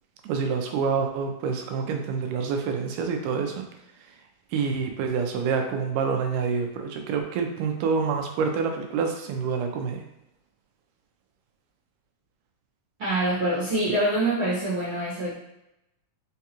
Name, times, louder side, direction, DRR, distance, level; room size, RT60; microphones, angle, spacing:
voice 1, 0.2-3.6 4.5-10.0, right 5 dB, 85° right, 4 dB, 2.1 m, -27 dB
voice 2, 13.0-15.3, right 1 dB, 55° right, -10 dB, 1.5 m, -25 dB
5.5 x 2.3 x 2.8 m, 0.87 s
omnidirectional pair, 3.8 m